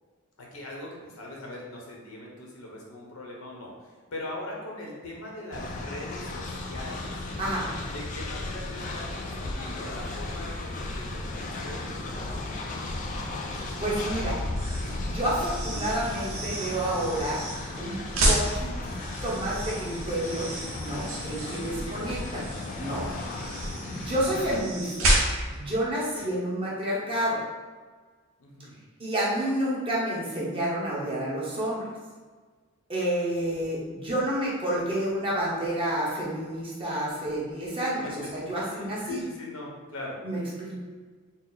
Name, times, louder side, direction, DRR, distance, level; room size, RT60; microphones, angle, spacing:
voice 1, 0.4-7.1 7.9-11.9 16.9-17.1 21.2-22.3 23.1-23.4 26.1-26.3 28.4-28.7 38.0-38.3 38.7-40.2, left 1 dB, 80° left, -2 dB, 0.9 m, -41 dB
Train, 5.5-24.6, left 2 dB, 35° left, 0.4 m, -35 dB
voice 2, 13.8-14.4 15.0-17.4 17.8-18.9 19.2-20.5 20.8-22.4 22.8-23.1 23.9-25.1 25.5-27.4 29.0-31.8 32.9-39.2 40.2-40.8, right 1 dB, 25° right, -6 dB, 0.9 m, -29 dB
sound 1, 14.5-25.6, right 1 dB, 70° right, 0.8 m, -31 dB
4.1 x 2.0 x 3.9 m, 1.5 s
head